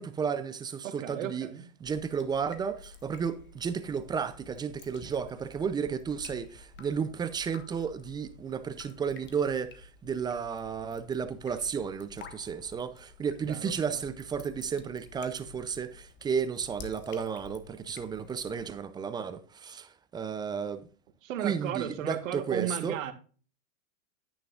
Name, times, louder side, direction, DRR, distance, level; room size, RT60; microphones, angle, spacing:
voice 1, 0.0-1.5 1.8-20.8 21.4-23.0, right 6 dB, 10° right, 0.4 m, -33 dB
voice 2, 0.8-1.6 13.5-14.0 21.2-23.1, right 10 dB, 70° right, 1.7 m, -35 dB
Drip, 1.8-18.8, left 5 dB, 25° left, 1.4 m, -51 dB
10.0 x 9.5 x 2.4 m
hypercardioid pair, 120°, 40 cm